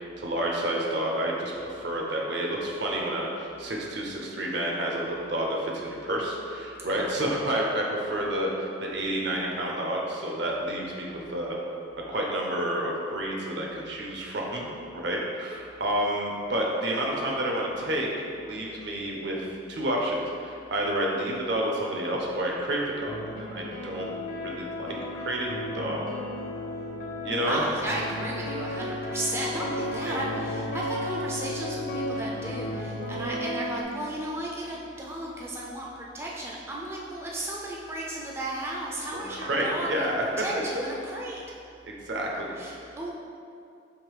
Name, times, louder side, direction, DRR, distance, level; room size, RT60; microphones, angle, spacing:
voice 1, 0.2-11.6 12.1-14.7 14.9-18.1 18.4-24.1 24.4-26.0 27.2-27.6 29.5-29.6 30.0-30.2 39.1-40.3 40.8-40.9 41.8-42.5, right 1 dB, 65° right, -1 dB, 0.7 m, -30 dB
voice 2, 6.9-7.2 27.4-41.4 42.5-43.1, right 1 dB, 15° right, -3 dB, 0.3 m, -34 dB
sound 1, 23.1-33.8, left 1 dB, 45° left, 0.6 m, -34 dB
3.7 x 3.0 x 4.7 m, 2.5 s
head